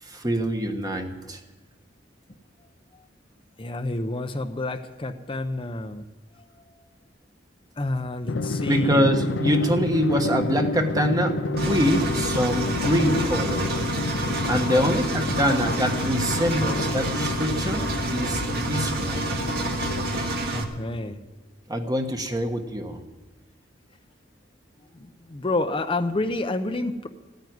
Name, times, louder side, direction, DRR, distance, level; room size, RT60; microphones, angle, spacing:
voice 1, 0.0-1.4 8.7-13.7 14.5-19.3 21.7-23.0, equal, 20° right, 5 dB, 1.3 m, -24 dB
voice 2, 3.6-6.0 6.5-6.9 7.8-9.1 14.7-14.9 20.5-21.2 24.9-27.1, left 2 dB, 30° left, 6 dB, 0.7 m, -29 dB
Drum, 8.3-20.6, left 3 dB, 75° left, 0.6 m, -30 dB
Engine, 11.6-20.6, right 2 dB, 55° right, 1.8 m, -28 dB
15.5 x 9.3 x 9.5 m, 1.1 s
head